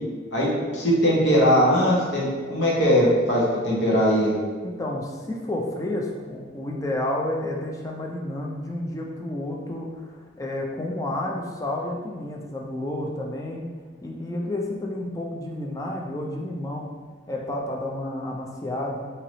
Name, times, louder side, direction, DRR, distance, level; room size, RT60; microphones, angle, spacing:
voice 1, 0.3-4.4, equal, 75° left, -4 dB, 1.0 m, -20 dB
voice 2, 4.6-13.7 14.0-16.9 17.3-19.1, left 1 dB, 20° left, -1 dB, 0.4 m, -30 dB
3.2 x 2.8 x 3.9 m, 1.5 s
head